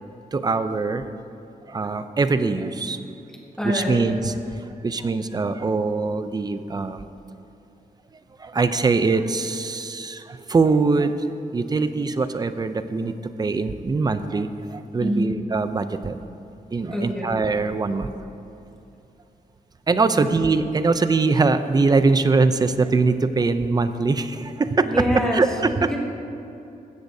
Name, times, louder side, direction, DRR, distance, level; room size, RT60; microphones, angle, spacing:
voice 1, 0.3-1.1 1.7-3.0 3.6-4.3 4.8-7.0 8.4-11.1 11.5-16.2 16.7-18.1 19.9-25.9, right 3 dB, 25° right, 10 dB, 0.4 m, -22 dB
voice 2, 3.6-4.1 15.0-15.3 16.9-17.3 20.1-20.3 24.9-25.4 25.9-26.0, equal, 5° left, -3 dB, 1.8 m, -25 dB
16.0 x 13.0 x 2.7 m, 2.7 s
wide cardioid pair, 165°, 16 cm